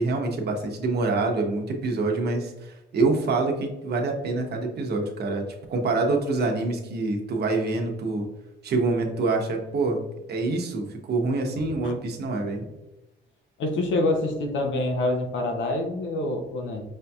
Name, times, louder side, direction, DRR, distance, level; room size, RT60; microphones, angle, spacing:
voice 1, 0.0-8.3 8.6-10.0 10.3-12.6, right 3 dB, 55° right, 2 dB, 0.8 m, -26 dB
voice 2, 13.6-16.8, left 2 dB, 70° left, 4 dB, 0.7 m, -26 dB
5.0 x 2.7 x 2.3 m, 0.99 s
cardioid pair, 90°, 20 cm